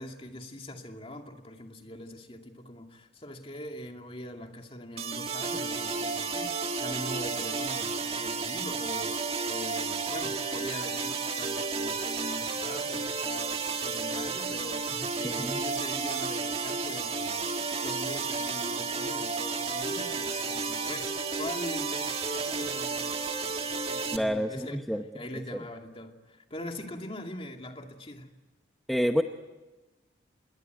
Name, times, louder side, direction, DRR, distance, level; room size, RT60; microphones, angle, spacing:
voice 1, 0.0-21.1 21.4-24.8 25.1-28.3, left 1 dB, 30° left, 3 dB, 2.5 m, -42 dB
sound 1, 5.0-24.2, right 4 dB, 30° right, 1.7 m, -32 dB
voice 2, 15.2-15.6 24.1-25.0 25.5-25.6 28.9-29.2, equal, ahead, 4 dB, 0.8 m, -28 dB
27.0 x 21.5 x 9.4 m, 1.2 s
head